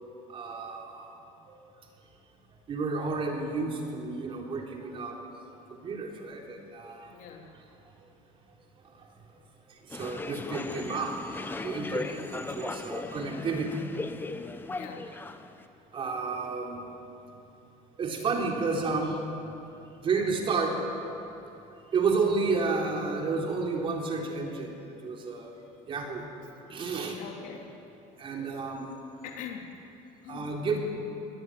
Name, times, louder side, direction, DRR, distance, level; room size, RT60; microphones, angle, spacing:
voice 1, 0.3-1.1 1.5-1.6 2.7-5.2 5.7-7.1 9.9-13.9 15.9-16.8 18.0-19.3 20.0-20.8 21.9-24.8 25.0-25.5 25.9-26.3 26.7-27.2 28.2-28.9 30.3-30.8, right 4 dB, 35° right, 1 dB, 3.8 m, -31 dB
voice 2, 7.1-7.5 14.7-15.1 27.2-27.7 29.2-29.7 30.2-30.5, left 7 dB, 65° left, 2 dB, 3.5 m, -42 dB
sound 1, 9.9-15.6, left 3 dB, 15° left, 1.1 m, -37 dB
24.5 x 19.0 x 9.4 m, 2.9 s
cardioid pair, 145°, 15 cm